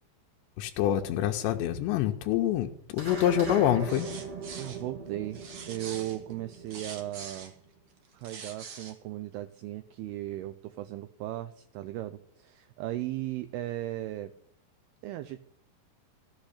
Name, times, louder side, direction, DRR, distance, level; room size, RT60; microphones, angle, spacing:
voice 1, 0.6-4.1, left 11 dB, 85° left, 4 dB, 3.1 m, -26 dB
sound 1, 3.0-7.6, right 4 dB, 35° right, 3.3 m, -40 dB
sound 2, 3.8-4.8 5.3-7.5 8.0-9.0, right 5 dB, 60° right, 1.6 m, -44 dB
voice 2, 4.6-5.4 5.7-7.5 8.1-14.3 15.0-15.4, right 14 dB, 80° right, 11 dB, 2.4 m, -37 dB
15.5 x 6.2 x 9.9 m, 0.66 s
omnidirectional pair, 5.0 m